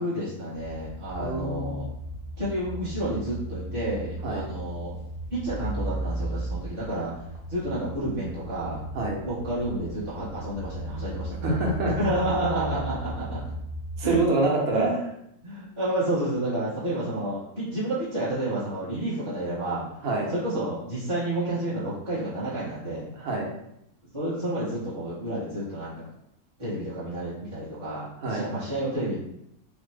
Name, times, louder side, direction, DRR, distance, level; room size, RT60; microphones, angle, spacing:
voice 1, 0.0-1.8 2.4-5.0 5.3-7.1 7.5-8.8 9.2-11.4 11.9-13.4 14.0-14.2 14.7-15.0 15.4-19.8 20.3-23.1 24.1-26.1 26.6-29.2, right 1 dB, 25° right, -13 dB, 0.8 m, -30 dB
sound 1, 0.5-14.2, right 1 dB, 45° left, 0.6 m, -36 dB
voice 2, 1.2-1.9 4.2-4.5 8.9-9.2 11.4-11.9 14.0-14.9 20.0-20.3 23.2-23.5 28.2-28.5, right 2 dB, 70° right, -1 dB, 1.2 m, -26 dB
3.0 x 2.1 x 3.2 m, 0.78 s
omnidirectional pair, 1.6 m